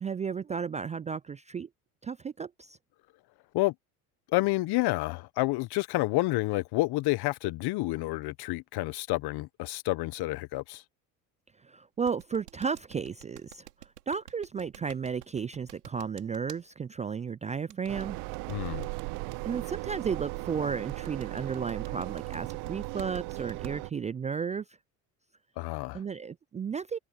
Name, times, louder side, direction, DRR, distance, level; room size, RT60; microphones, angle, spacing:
voice 1, 0.0-1.7 2.0-2.8 11.7-13.7 14.1-18.2 19.4-24.6 25.9-27.0, right 6 dB, 15° right, 0.4 m, -33 dB
voice 2, 4.3-10.8 18.5-18.8 25.6-26.0, left 20 dB, 55° left, 1.4 m, -29 dB
sound 1, 12.1-16.6 17.7-19.4 20.9-23.7, right 12 dB, 85° right, 3.3 m, -48 dB
sound 2, 17.9-23.9, right 26 dB, 65° right, 1.5 m, -37 dB
hypercardioid pair, 75°, 45 cm